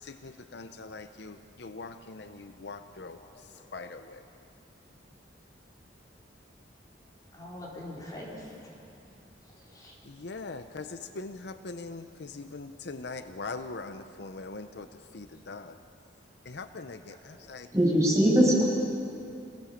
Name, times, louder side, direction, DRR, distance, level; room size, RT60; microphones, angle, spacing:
voice 1, 0.0-3.2 3.7-4.2 10.1-14.9 15.1-15.8 16.5-17.7, left 3 dB, 60° left, 9 dB, 0.7 m, -41 dB
voice 2, 3.2-3.7 7.3-8.6 9.5-9.9 10.8-11.1 17.1-17.5, left 1 dB, 20° left, -5 dB, 4.3 m, -45 dB
voice 3, 17.7-18.6, equal, 15° right, -4 dB, 6.5 m, -21 dB
27.0 x 17.5 x 7.3 m, 2.6 s
head